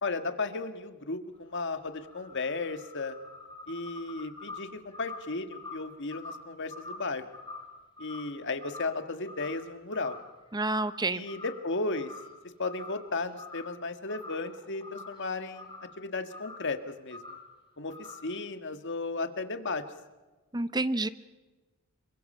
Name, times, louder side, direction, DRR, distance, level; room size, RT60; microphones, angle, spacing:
voice 1, 0.0-3.2 3.7-7.3 8.0-10.2 11.1-12.1 12.6-15.7 16.0-17.2 17.8-19.8, left 3 dB, 55° left, 8 dB, 1.9 m, -34 dB
sound 1, 1.3-9.0 9.3-9.7 9.9-11.0 11.2-11.6 11.9-12.4 12.7-13.8 14.1-16.0 16.3-16.7 17.1-17.5 17.9-18.4, left 3 dB, 20° left, 4.0 m, -46 dB
voice 2, 10.5-11.2 20.5-21.1, right 2 dB, 20° right, 14 dB, 0.8 m, -29 dB
27.5 x 24.0 x 5.7 m, 1.2 s
head